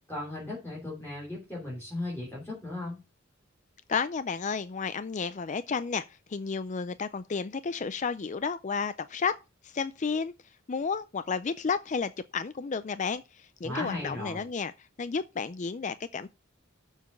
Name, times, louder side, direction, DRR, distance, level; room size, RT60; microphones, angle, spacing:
voice 1, 0.1-3.0 13.6-14.5, left 2 dB, 10° left, 3.6 m, -36 dB
voice 2, 3.9-9.3 9.6-10.3 10.7-14.7 15.0-16.3, left 5 dB, 35° left, 0.4 m, -32 dB
7.2 x 5.8 x 7.3 m
head